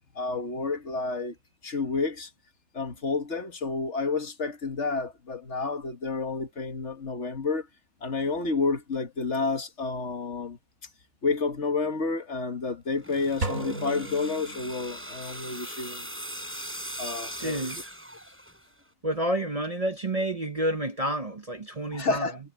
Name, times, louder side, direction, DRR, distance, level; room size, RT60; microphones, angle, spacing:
voice 1, 0.2-1.4 1.6-2.3 2.7-7.7 8.0-10.6 11.2-16.1 17.0-17.7 21.9-22.4, left 4 dB, 60° left, 1.8 m, -30 dB
sound 1, 12.9-18.8, equal, 10° right, 5.6 m, -40 dB
sound 2, 13.4-15.2, right 2 dB, 85° right, 3.6 m, -35 dB
voice 2, 17.4-17.8 19.0-22.3, right 1 dB, 30° right, 0.9 m, -29 dB
omnidirectional pair, 1.4 m